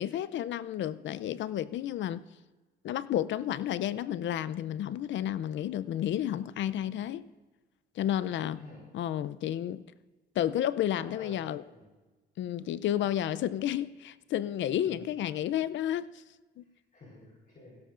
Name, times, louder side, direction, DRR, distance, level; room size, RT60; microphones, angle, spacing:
voice 1, 0.0-2.2 2.8-7.3 8.0-8.6 8.9-9.8 10.4-11.6 12.4-16.1 16.6-16.7, left 11 dB, 70° left, 0.5 m, -31 dB
voice 2, 11.0-11.9 14.9-15.0 16.7-17.8, left 2 dB, 45° left, 4.2 m, -51 dB
17.0 x 16.5 x 2.5 m
cardioid pair, 90°, 20 cm